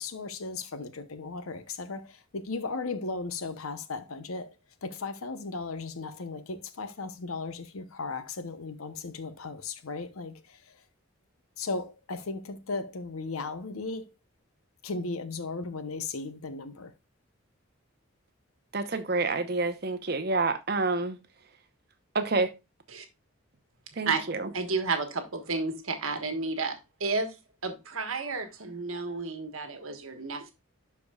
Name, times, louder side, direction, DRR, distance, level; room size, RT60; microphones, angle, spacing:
voice 1, 0.0-4.6 4.8-10.8 11.6-14.1 14.8-16.9, left 3 dB, 80° left, 0.9 m, -36 dB
voice 2, 18.7-21.2 22.1-22.5 24.0-24.5, right 3 dB, 50° right, 0.9 m, -28 dB
voice 3, 24.1-27.4 27.6-30.5, right 4 dB, 75° right, 1.4 m, -32 dB
12.0 x 4.7 x 2.3 m
head